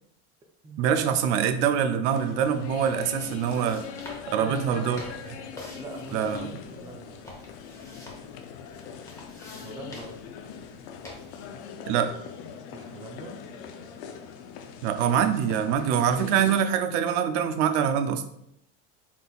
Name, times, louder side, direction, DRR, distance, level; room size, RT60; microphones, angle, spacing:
voice 1, 0.8-3.8 4.3-5.0 6.1-6.4 11.9-12.1 14.8-18.2, right 8 dB, 80° right, 9 dB, 0.5 m, -24 dB
sound 1, 2.1-16.6, left 7 dB, 85° left, 0.6 m, -42 dB
sound 2, 2.6-11.5, left 1 dB, 10° left, 0.9 m, -48 dB
voice 2, 4.3-5.0 5.7-7.2 9.6-10.2 12.7-13.3, right 2 dB, 15° right, 3 dB, 0.5 m, -41 dB
4.2 x 3.5 x 2.3 m, 0.77 s
supercardioid pair, 125°, 33 cm